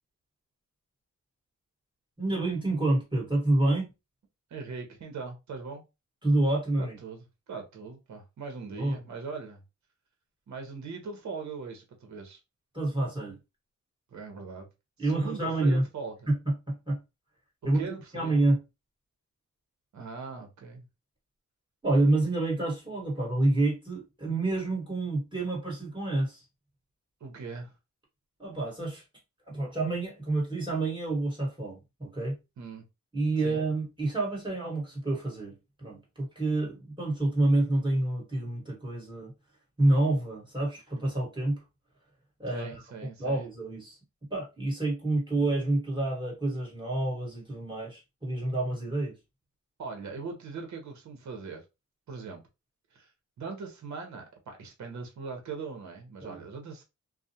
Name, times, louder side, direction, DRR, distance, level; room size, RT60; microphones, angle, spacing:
voice 1, 2.2-3.9 6.2-7.0 8.8-9.0 12.7-13.4 15.0-15.8 16.3-17.0 17.6-17.9 18.1-18.6 21.8-26.4 28.4-29.0 29.5-32.3 33.1-39.3 39.8-41.6 42.4-42.8 43.2-44.0 44.3-49.1 56.2-56.4, right 2 dB, 15° right, 1.4 m, -28 dB
voice 2, 4.5-5.8 6.8-7.2 7.5-9.6 10.5-12.4 14.1-14.7 15.0-16.1 17.6-18.3 19.9-20.8 27.2-27.7 32.6-32.9 33.4-33.6 42.5-43.5 49.8-51.6 52.1-52.4 52.9-53.1 53.4-56.8, right 4 dB, 70° right, 0.8 m, -40 dB
2.4 x 2.0 x 2.7 m
cardioid pair, 95°, 30 cm